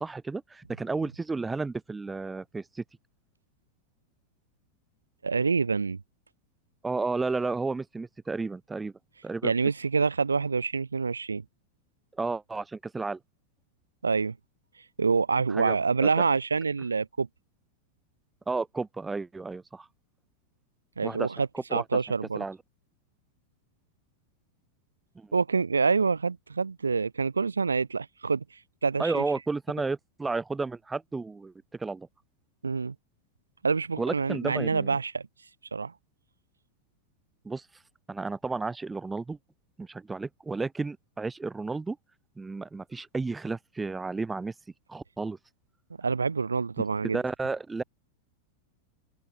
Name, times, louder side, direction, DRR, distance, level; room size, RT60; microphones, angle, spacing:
voice 1, 0.0-2.8 6.8-8.9 9.2-9.5 12.2-13.2 15.5-15.8 18.5-19.9 21.0-21.3 21.5-21.8 22.4-22.6 25.2-25.3 29.0-32.1 34.0-35.0 37.4-37.6 38.1-39.4 39.8-42.0 42.4-44.5 44.9-45.4 47.1-47.8, right 3 dB, 10° right, 0.8 m, -32 dB
voice 2, 5.2-6.0 9.4-11.4 14.0-14.4 15.0-17.3 21.0-22.4 25.3-28.4 28.8-29.2 32.6-32.9 33.6-35.2 35.7-35.9 46.0-47.2, right 4 dB, 75° right, 0.7 m, -26 dB
open air
figure-of-eight pair, 90°, 0 cm